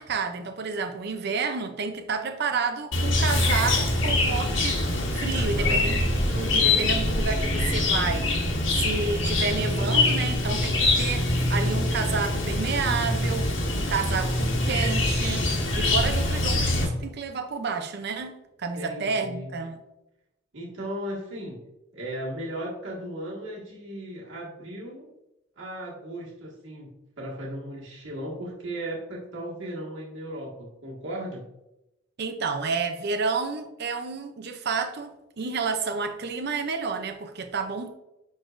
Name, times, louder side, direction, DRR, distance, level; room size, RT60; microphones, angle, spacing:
voice 1, 0.0-8.4 8.7-19.8 32.2-37.9, right 5 dB, 55° right, 0.5 m, -30 dB
Chirp tweet, 2.9-16.8, left 2 dB, 75° left, 1.5 m, -24 dB
voice 2, 5.3-5.9 18.8-19.5 20.5-21.6 21.9-25.1 25.6-31.4, right 1 dB, 70° right, 1.8 m, -36 dB
10.0 x 4.0 x 2.5 m
head